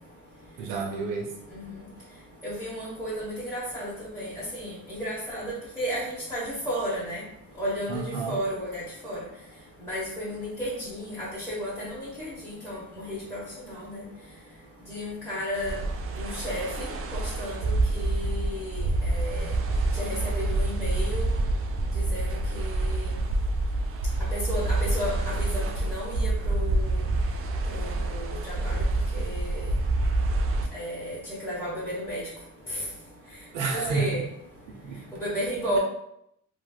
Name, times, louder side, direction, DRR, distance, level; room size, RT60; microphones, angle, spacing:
voice 1, 0.6-1.4 7.9-8.4 33.5-34.2 34.7-35.0, right 4 dB, 90° right, 0 dB, 0.7 m, -30 dB
voice 2, 2.4-7.2 7.6-9.2 9.8-13.4 13.7-14.0 14.9-15.8 16.2-16.9 17.1-19.5 20.0-20.1 20.5-21.3 22.1-22.3 22.5-23.1 24.3-27.0 27.7-28.8 29.1-29.6 30.7-31.2 31.4-32.2 32.7-32.8 33.7-34.2 35.2-35.8, equal, 10° left, -10 dB, 1.0 m, -33 dB
sound 1, 15.6-30.7, right 2 dB, 45° right, 0.4 m, -27 dB
3.1 x 2.6 x 2.3 m, 0.77 s
cardioid pair, 90°, 30 cm